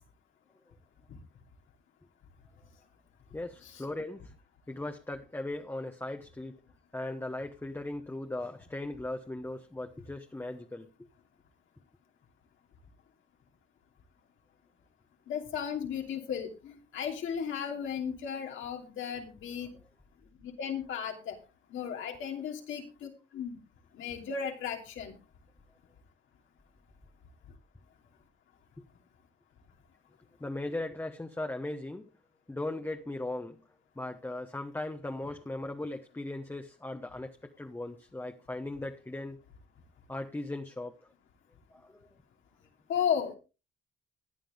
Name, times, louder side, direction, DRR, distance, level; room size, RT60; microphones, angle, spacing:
voice 1, 3.3-4.3 4.7-6.6 6.9-11.1 30.4-32.0 32.5-33.6 34.0-39.4 40.1-40.9 41.9-42.0, left 2 dB, 10° left, 1.1 m, -38 dB
voice 2, 15.3-19.7 20.4-21.4 21.7-23.6 23.9-25.1 42.9-43.4, left 7 dB, 80° left, 2.9 m, -35 dB
14.5 x 10.0 x 3.6 m
cardioid pair, 90°, 20 cm